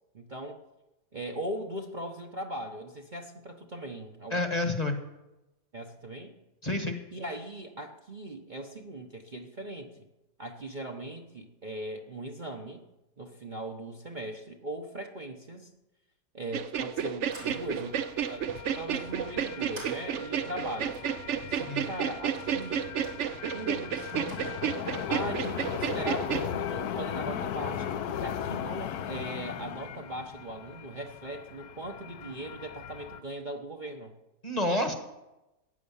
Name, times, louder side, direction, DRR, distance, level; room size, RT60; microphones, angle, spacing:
voice 1, 0.1-0.6 1.1-4.4 5.7-6.3 7.1-10.1 10.4-12.9 13.2-15.7 16.3-18.0 18.3-21.0 21.5-22.9 23.5-24.5 25.1-34.2, right 1 dB, 35° right, 1 dB, 1.0 m, -39 dB
voice 2, 4.3-5.0 6.6-7.0 21.6-21.9 34.4-34.9, left 2 dB, 25° left, 5 dB, 1.3 m, -29 dB
sound 1, 16.5-26.5, right 8 dB, 55° right, 0.9 m, -31 dB
sound 2, 17.0-24.9, right 2 dB, 90° right, 4.1 m, -53 dB
sound 3, 17.3-33.2, left 9 dB, 70° left, 1.2 m, -38 dB
15.5 x 9.5 x 7.1 m, 0.98 s
omnidirectional pair, 1.8 m